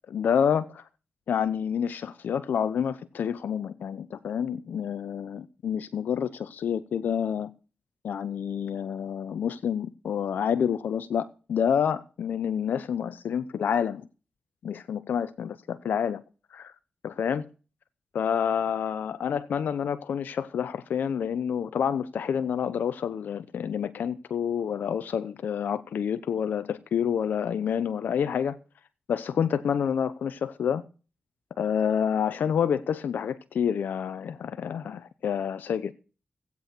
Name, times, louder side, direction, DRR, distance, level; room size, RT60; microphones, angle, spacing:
voice 1, 0.1-0.8 1.3-7.5 8.0-14.1 14.6-16.2 16.5-16.7 17.0-17.5 18.1-28.6 29.1-30.8 31.6-35.9, left 8 dB, 85° left, 0.8 m, -28 dB
15.5 x 8.5 x 6.1 m
cardioid pair, 50°, 3 cm